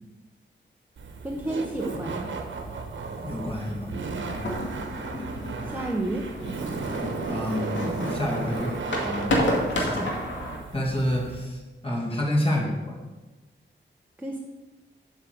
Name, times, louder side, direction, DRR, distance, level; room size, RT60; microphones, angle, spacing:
Laughter, 1.0-11.5, right 4 dB, 85° right, 1.4 m, -35 dB
voice 1, 1.2-2.3 5.6-6.3 14.2-14.4, right 1 dB, 10° right, 0 dB, 1.0 m, -30 dB
voice 2, 3.2-4.0 7.2-10.2 10.7-13.0, left 1 dB, 30° left, -1 dB, 2.6 m, -29 dB
sound 1, 4.3-10.6, left 1 dB, 80° left, 2.2 m, -31 dB
8.1 x 6.5 x 7.8 m, 1.1 s
wide cardioid pair, 160°, 19 cm